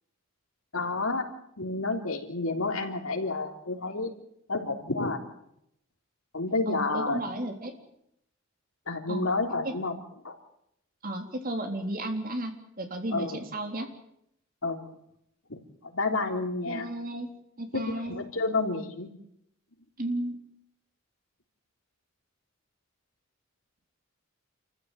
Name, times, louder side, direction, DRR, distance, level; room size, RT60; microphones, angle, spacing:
voice 1, 0.7-1.3 1.6-4.1 4.5-5.2 6.3-7.2 8.9-10.0 10.2-10.4 13.1-13.4 14.6-14.9 15.5-15.6 15.9-16.9 17.7-19.1, left 3 dB, 80° left, 3 dB, 3.6 m, -30 dB
voice 2, 6.7-7.7 9.1-9.3 9.6-9.8 11.0-12.5 12.8-13.9 16.7-18.2 20.0-20.4, right 1 dB, 45° right, 5 dB, 3.6 m, -33 dB
28.0 x 15.0 x 9.2 m, 0.77 s
head